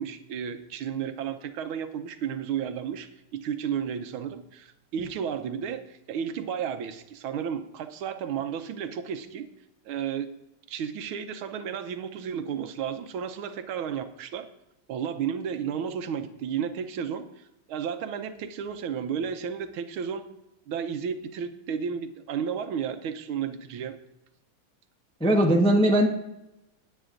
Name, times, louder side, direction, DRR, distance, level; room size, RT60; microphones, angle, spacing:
voice 1, 0.0-9.5 9.9-10.4 10.7-14.5 14.9-20.3 20.7-24.0, right 8 dB, 85° right, 9 dB, 1.6 m, -33 dB
voice 2, 25.2-26.1, right 1 dB, 5° left, 1 dB, 0.6 m, -19 dB
17.5 x 9.0 x 2.5 m, 0.90 s
omnidirectional pair, 2.3 m